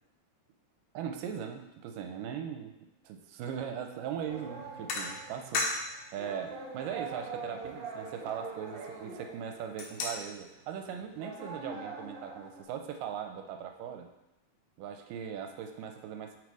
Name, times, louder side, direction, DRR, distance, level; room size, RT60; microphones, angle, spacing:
voice 1, 0.9-2.7 3.0-5.7 6.1-14.1 14.8-16.4, right 8 dB, 85° right, 5 dB, 2.2 m, -39 dB
sound 1, 4.0-4.2 4.9-6.0 6.4-6.5 7.1-7.2 7.4-9.1 9.5-10.4, left 3 dB, 70° left, 1.5 m, -36 dB
sound 2, 4.3-10.3 10.6-10.7 11.2-12.6, right 4 dB, 65° right, 2.2 m, -43 dB
6.4 x 4.0 x 4.8 m, 0.89 s
omnidirectional pair, 3.9 m